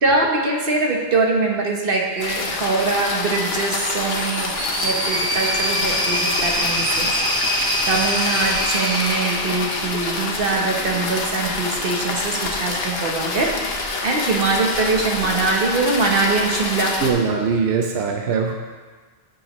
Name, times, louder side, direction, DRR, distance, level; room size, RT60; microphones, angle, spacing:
voice 1, 0.0-7.1 7.9-17.0, right 3 dB, 60° right, 0 dB, 1.3 m, -22 dB
sound 1, 2.2-17.1, left 3 dB, 75° left, 1.1 m, -27 dB
sound 2, 4.1-10.3, equal, 5° left, 0.8 m, -24 dB
voice 2, 17.0-18.5, right 5 dB, 85° right, 3 dB, 0.9 m, -21 dB
9.8 x 6.4 x 3.0 m, 1.5 s
omnidirectional pair, 1.1 m